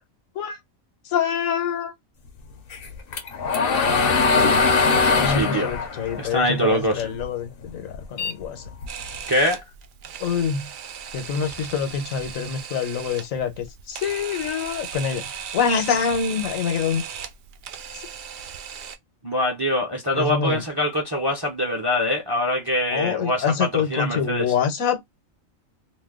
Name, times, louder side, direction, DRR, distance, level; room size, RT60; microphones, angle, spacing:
voice 1, 1.0-1.9 5.2-8.6 10.2-10.7 11.1-17.0 20.1-20.6 22.9-25.0, left 7 dB, 75° left, 1.2 m, -26 dB
sound 1, 2.7-7.2 7.6-9.2, left 4 dB, 55° left, 0.7 m, -21 dB
voice 2, 5.2-5.7 6.2-7.1 9.3-9.6 19.2-24.5, left 1 dB, 25° right, 0.5 m, -24 dB
Camera, 8.9-19.0, right 7 dB, 90° right, 0.4 m, -37 dB
2.6 x 2.2 x 3.5 m
omnidirectional pair, 1.4 m